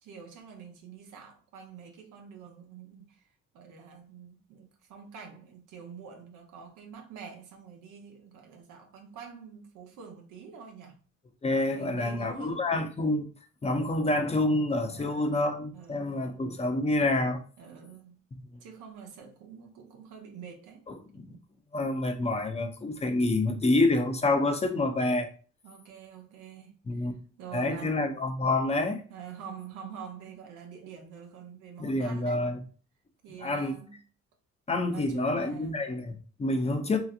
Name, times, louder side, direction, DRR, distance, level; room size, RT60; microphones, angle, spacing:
voice 1, 0.0-3.3 3.5-11.0 11.7-12.7 14.9-16.4 17.6-18.2 18.6-20.8 21.1-21.2 25.6-26.8 27.4-28.0 29.1-32.4 33.2-34.0 34.9-36.1, right 7 dB, 85° right, 0.9 m, -46 dB
voice 2, 11.4-13.3 13.6-17.4 21.2-21.4 21.7-25.3 26.9-27.1 27.5-29.0 31.8-32.6 33.4-33.8 34.7-37.0, left 2 dB, 20° left, 0.6 m, -27 dB
3.1 x 2.8 x 2.4 m
cardioid pair, 90°, 30 cm